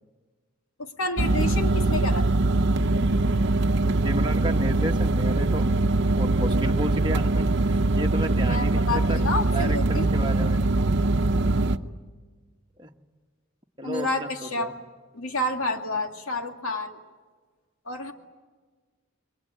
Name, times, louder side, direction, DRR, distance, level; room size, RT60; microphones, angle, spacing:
voice 1, 0.8-2.3 8.4-10.2 13.8-14.7 15.1-17.0 17.8-18.1, left 2 dB, 85° left, 4 dB, 2.3 m, -29 dB
sound 1, 1.2-11.8, right 2 dB, 55° right, 0.9 m, -22 dB
voice 2, 4.0-5.6 6.1-9.2 9.5-10.6 12.8-12.9 13.8-14.3 14.6-14.7, right 1 dB, 20° right, 1 dB, 1.3 m, -32 dB
29.0 x 22.5 x 8.8 m, 1.4 s
head